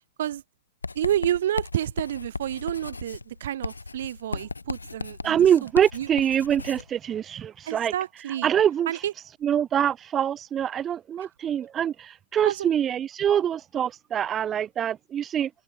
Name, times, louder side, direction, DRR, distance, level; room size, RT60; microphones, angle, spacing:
Writing, 0.8-6.9, left 3 dB, 85° left, 2.7 m, -36 dB
voice 1, 0.9-6.1 7.6-8.5 8.9-9.1 11.2-11.3 12.4-12.7, right 11 dB, 60° right, 2.6 m, -29 dB
voice 2, 5.2-7.9 8.4-8.9 9.4-15.5, right 9 dB, 20° right, 1.8 m, -24 dB
open air
figure-of-eight pair, 105°, 0 cm